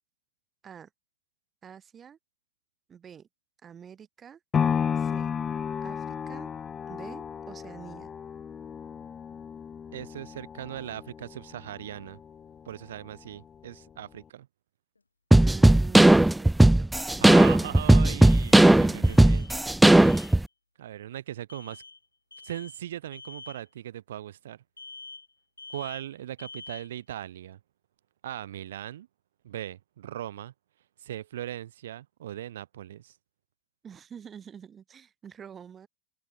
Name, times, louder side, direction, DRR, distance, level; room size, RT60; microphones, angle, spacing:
voice 1, 1.6-2.2 2.9-3.3 3.6-4.4 4.9-5.3 5.8-6.5 6.9-8.1 15.3-16.9 33.8-35.9, right 8 dB, 20° right, 4.6 m, -47 dB
sound 1, 4.5-12.6 13.1-13.2, left 7 dB, 20° left, 1.6 m, -33 dB
voice 2, 9.9-12.2 12.6-14.5 17.2-19.5 20.8-21.8 22.4-24.6 25.7-27.6 28.2-29.1 29.4-30.5 31.0-33.1, right 12 dB, 60° right, 6.0 m, -39 dB
sound 2, 15.0-15.1 18.2-18.8 19.0-19.6 19.9-20.4 21.5-22.0 22.3-22.8 23.1-23.6 24.8-25.3 25.6-26.1 26.4-27.0, left 3 dB, 80° left, 3.5 m, -46 dB
sound 3, 15.3-20.4, right 1 dB, 5° right, 0.5 m, -17 dB
open air
figure-of-eight pair, 90°, 0 cm